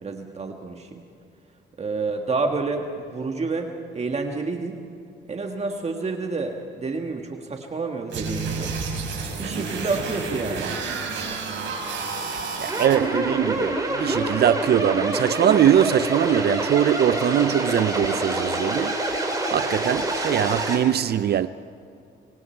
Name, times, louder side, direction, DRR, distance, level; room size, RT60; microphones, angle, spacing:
voice 1, 0.0-1.0 1.8-4.8 5.3-8.7 9.3-10.7, right 3 dB, 35° right, 1.7 m, -29 dB
sound 1, 8.1-13.0, right 4 dB, 70° right, 5.8 m, -30 dB
voice 2, 12.6-19.0 19.5-21.5, right 10 dB, 55° right, 0.5 m, -22 dB
sound 2, 12.7-20.8, right 1 dB, 20° right, 4.5 m, -26 dB
25.5 x 24.0 x 4.6 m
cardioid pair, 90°, 20 cm